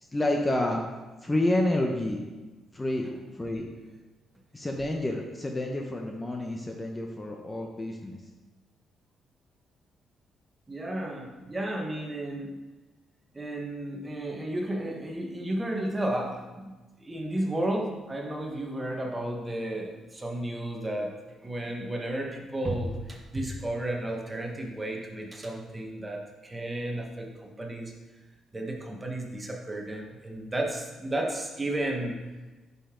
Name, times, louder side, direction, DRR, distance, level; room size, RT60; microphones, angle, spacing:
voice 1, 0.1-0.8 1.2-2.2 2.7-3.1 3.3-3.7 4.5-8.2, left 1 dB, 15° left, 1 dB, 0.9 m, -29 dB
voice 2, 10.7-12.6 13.3-16.7 17.0-21.1 21.4-27.9 28.5-32.3, right 1 dB, 20° right, 1 dB, 1.4 m, -33 dB
9.2 x 5.5 x 3.8 m, 1.2 s
cardioid pair, 90°, 0 cm